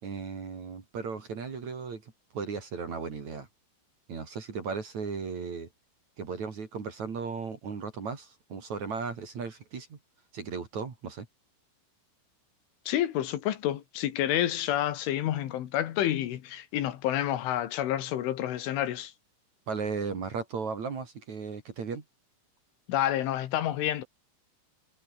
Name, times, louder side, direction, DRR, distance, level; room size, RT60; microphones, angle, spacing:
voice 1, 0.0-2.0 2.3-3.5 4.1-5.7 6.2-10.0 10.3-11.3 19.7-22.0, right 5 dB, 40° right, 3.8 m, -36 dB
voice 2, 12.9-19.1 22.9-24.0, left 12 dB, 80° left, 4.3 m, -29 dB
omnidirectional pair, 5.6 m